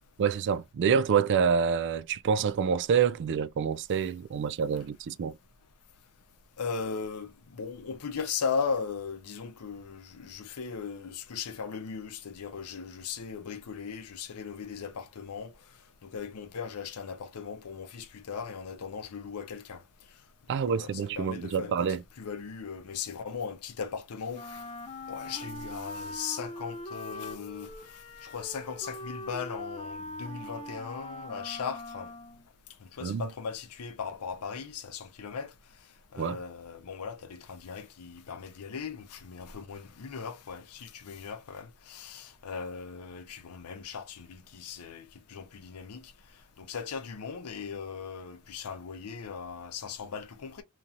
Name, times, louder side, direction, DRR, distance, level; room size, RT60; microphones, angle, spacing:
voice 1, 0.2-5.4 20.5-22.0 33.0-33.2 36.2-36.4, right 6 dB, 55° right, 0.3 m, -27 dB
voice 2, 6.6-15.5 16.0-19.8 20.7-24.6 25.1-27.7 28.2-32.1 32.9-35.5 36.1-46.1 46.6-50.6, left 6 dB, 85° left, 0.6 m, -38 dB
Wind instrument woodwind instrument, 24.3-32.5, left 1 dB, 25° left, 0.4 m, -42 dB
2.9 x 2.7 x 2.5 m
head